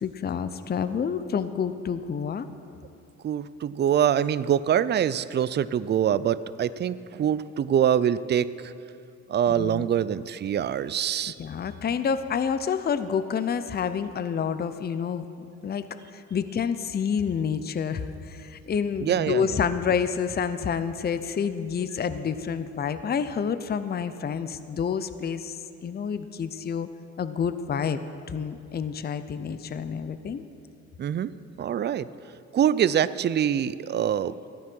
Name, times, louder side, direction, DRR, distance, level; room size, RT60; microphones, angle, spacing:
voice 1, 0.0-2.5 9.5-9.9 11.4-15.3 15.6-15.8 16.1-26.9 27.2-28.0 28.3-30.4, left 7 dB, 35° left, 12 dB, 0.6 m, -28 dB
voice 2, 3.2-8.7 9.3-11.4 19.0-19.6 31.0-31.3 31.6-32.1 32.5-34.3, right 9 dB, 35° right, 16 dB, 0.4 m, -24 dB
14.0 x 9.5 x 6.1 m, 2.6 s
cardioid pair, 90°, 30 cm